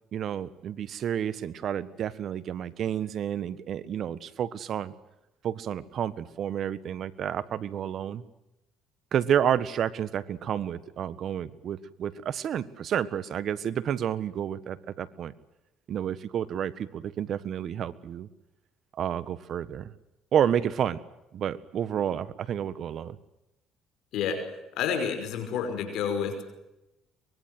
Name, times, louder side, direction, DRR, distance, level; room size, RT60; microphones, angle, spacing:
voice 1, 0.1-4.9 5.4-8.2 9.1-15.3 15.9-18.3 19.0-19.9 20.3-21.0 21.3-23.2, right 9 dB, 55° right, 15 dB, 1.5 m, -30 dB
voice 2, 24.1-24.5 24.8-26.4, left 7 dB, 70° left, 7 dB, 5.5 m, -29 dB
24.0 x 22.0 x 7.9 m, 0.93 s
cardioid pair, 95°, 0 cm